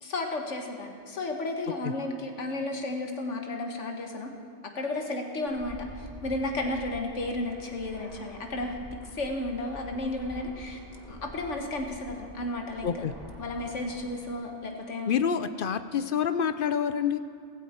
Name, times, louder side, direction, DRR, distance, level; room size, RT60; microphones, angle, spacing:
voice 1, 0.0-4.3 4.7-10.8 11.1-13.1 13.4-15.2, left 2 dB, 85° left, 3 dB, 1.7 m, -33 dB
Fixed-wing aircraft airplane, 5.5-14.3, equal, 30° right, 3.0 m, -47 dB
voice 2, 15.1-17.2, left 7 dB, 60° left, 11 dB, 0.6 m, -27 dB
16.0 x 14.5 x 4.4 m, 2.4 s
omnidirectional pair, 1.2 m